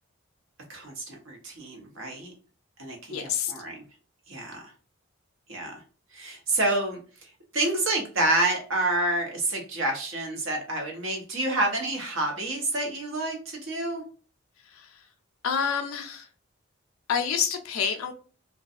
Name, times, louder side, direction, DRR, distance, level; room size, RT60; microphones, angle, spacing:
voice 1, 0.7-2.3 2.8-3.8 4.3-4.6 5.5-5.8 6.1-14.0, right 2 dB, 70° right, 0.9 m, -28 dB
voice 2, 3.1-3.5 14.8-14.9 15.4-16.3 17.1-18.1, left 7 dB, 80° left, 0.4 m, -27 dB
2.6 x 2.3 x 2.4 m
head